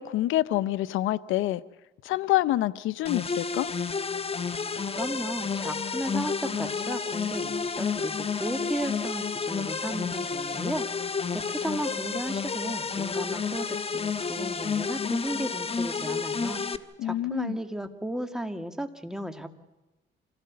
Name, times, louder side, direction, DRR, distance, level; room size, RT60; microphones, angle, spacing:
voice 1, 0.0-1.6 2.0-3.7 17.0-17.6, left 15 dB, 90° left, 16 dB, 0.7 m, -27 dB
sound 1, 3.1-16.8, left 5 dB, 30° left, 1.2 m, -30 dB
voice 2, 4.9-16.6 17.0-19.5, right 1 dB, 5° right, 7 dB, 2.2 m, -35 dB
26.0 x 17.0 x 8.6 m, 1.1 s
cardioid pair, 90°, 20 cm